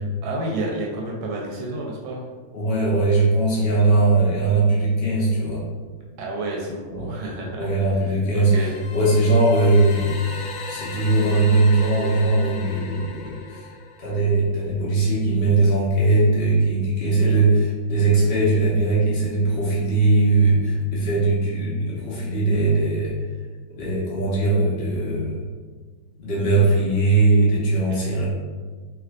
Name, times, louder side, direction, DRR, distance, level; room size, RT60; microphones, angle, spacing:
voice 1, 0.0-2.3 6.2-8.7 17.0-17.3 27.9-28.3, right 2 dB, 80° right, -2 dB, 1.3 m, -31 dB
voice 2, 2.5-5.6 6.9-7.2 7.6-13.7 14.0-23.2 23.7-25.4 26.2-28.3, right 2 dB, 60° left, -7 dB, 0.6 m, -20 dB
sound 1, 8.4-14.3, left 4 dB, 90° left, 1.4 m, -37 dB
3.4 x 3.0 x 2.4 m, 1.4 s
omnidirectional pair, 2.2 m